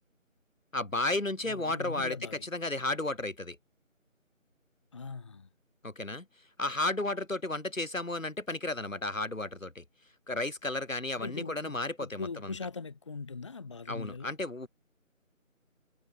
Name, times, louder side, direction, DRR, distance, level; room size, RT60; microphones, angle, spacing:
voice 1, 0.7-2.1 2.4-3.6 5.8-6.3 6.6-9.8 10.3-12.5 13.9-14.7, left 2 dB, 70° left, 6.0 m, -33 dB
voice 2, 1.4-2.5 4.9-5.5 11.2-14.3, left 4 dB, 20° left, 2.2 m, -41 dB
figure-of-eight pair, 165°, 40 cm